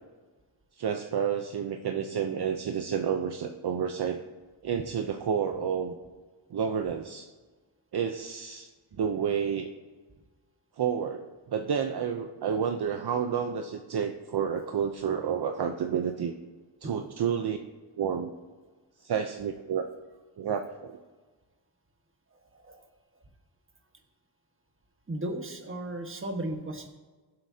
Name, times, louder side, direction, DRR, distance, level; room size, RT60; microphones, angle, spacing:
voice 1, 0.8-4.2 4.6-6.0 6.5-7.3 7.9-8.7 9.0-9.7 10.8-16.3 16.8-17.6 18.0-18.3 19.0-19.9 20.4-21.0, right 7 dB, 50° right, 5 dB, 0.8 m, -30 dB
voice 2, 25.1-26.9, right 1 dB, 25° right, 4 dB, 1.5 m, -35 dB
22.0 x 7.8 x 2.8 m, 1.3 s
wide cardioid pair, 115°, 49 cm